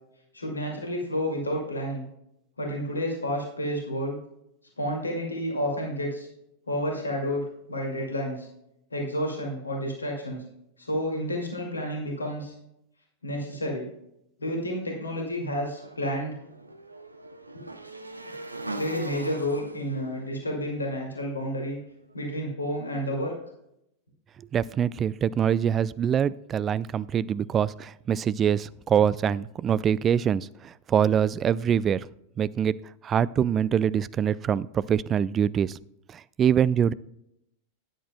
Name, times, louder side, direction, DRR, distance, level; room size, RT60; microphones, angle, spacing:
voice 1, 0.3-2.0 2.6-4.2 4.8-6.3 6.7-8.5 8.9-10.4 10.8-12.5 13.2-13.9 14.4-16.4 18.8-21.8 22.1-23.3, equal, 80° left, 0 dB, 2.1 m, -30 dB
Motorcycle / Engine, 15.7-21.9, right 2 dB, 85° right, 0.7 m, -41 dB
voice 2, 24.5-32.1 32.4-32.8 33.0-35.8 36.1-36.9, right 8 dB, 25° right, 19 dB, 0.3 m, -24 dB
12.5 x 10.0 x 2.2 m, 0.79 s
figure-of-eight pair, 90°, 0 cm